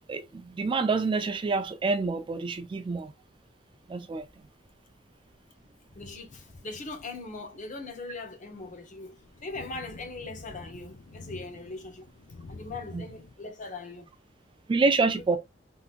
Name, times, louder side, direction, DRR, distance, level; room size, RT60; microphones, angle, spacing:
voice 1, 0.1-3.1 3.9-4.3 12.9-13.1 14.7-15.4, right 4 dB, 25° right, 0.3 m, -27 dB
sound 1, 4.2-4.4 5.3-5.4 5.9-6.4 7.1-7.3 8.6-13.3, left 3 dB, 85° left, 0.7 m, -48 dB
voice 2, 5.9-9.2 9.4-12.1 12.5-14.1 15.3-15.4, left 3 dB, 45° left, 0.8 m, -40 dB
3.7 x 2.8 x 2.4 m
head